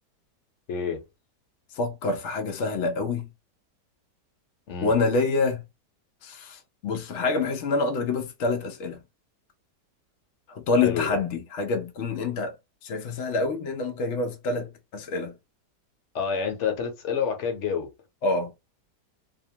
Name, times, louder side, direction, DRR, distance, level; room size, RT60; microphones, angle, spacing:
voice 1, 0.7-1.0 4.7-4.9 10.8-11.2 16.1-17.9, left 6 dB, 55° left, 0.9 m, -28 dB
voice 2, 1.7-3.3 4.8-5.6 6.2-9.0 10.5-12.5 12.8-15.3 18.2-18.5, left 3 dB, 80° left, 0.6 m, -27 dB
2.8 x 2.0 x 2.7 m
omnidirectional pair, 1.8 m